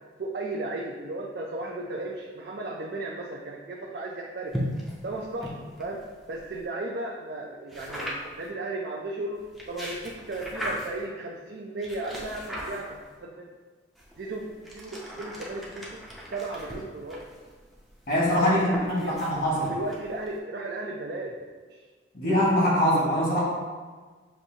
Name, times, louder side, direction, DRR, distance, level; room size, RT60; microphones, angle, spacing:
voice 1, 0.2-4.6 5.0-5.5 5.8-6.0 6.3-9.4 9.7-13.5 14.2-16.0 16.3-17.2 18.4-19.2 19.6-21.4 21.7-21.8, right 2 dB, 55° right, -1 dB, 0.4 m, -35 dB
sound 1, 4.5-6.7 7.7-8.5 9.4-11.1 11.8-13.2 14.0-20.4, equal, ahead, 0.5 m, -38 dB
voice 2, 18.1-19.7 22.1-23.4, equal, 50° left, -6 dB, 1.4 m, -23 dB
6.3 x 2.6 x 2.7 m, 1.4 s
head